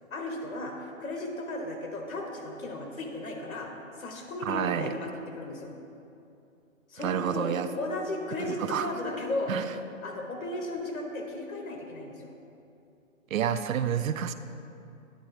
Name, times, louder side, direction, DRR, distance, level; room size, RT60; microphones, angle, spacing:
voice 1, 0.1-3.7 4.0-5.7 6.9-9.5 10.0-12.3, left 2 dB, 80° left, 2 dB, 1.4 m, -35 dB
voice 2, 4.4-4.9 7.0-7.7 8.6-9.0 9.5-9.6 13.3-14.3, right 9 dB, 75° right, 11 dB, 0.5 m, -29 dB
9.3 x 3.8 x 4.4 m, 2.7 s
hypercardioid pair, 160°, 41 cm